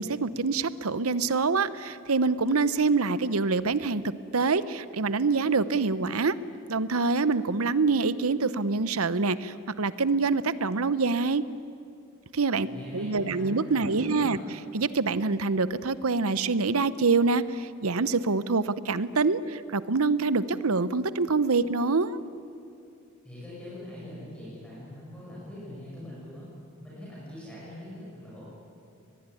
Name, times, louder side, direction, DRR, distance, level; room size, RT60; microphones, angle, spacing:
voice 1, 0.0-6.4 6.7-11.4 12.3-12.7 12.9-14.4 14.7-22.2, right 4 dB, 75° right, 15 dB, 0.9 m, -25 dB
voice 2, 12.6-13.6 14.0-14.5 23.2-26.5 26.8-28.4, left 1 dB, 5° left, -8 dB, 7.5 m, -42 dB
23.5 x 20.5 x 9.9 m, 2.5 s
head